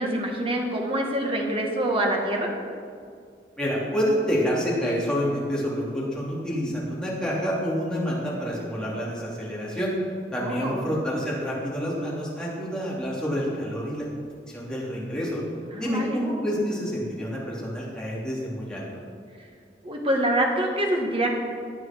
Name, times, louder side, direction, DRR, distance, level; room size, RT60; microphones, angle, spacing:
voice 1, 0.0-2.5 10.4-10.9 15.7-16.2 19.8-21.3, right 1 dB, 30° right, 1 dB, 2.0 m, -25 dB
voice 2, 3.6-9.9 10.3-14.1 14.5-15.4 15.8-18.8, equal, 5° left, -6 dB, 3.6 m, -28 dB
17.5 x 9.6 x 4.7 m, 2.2 s
head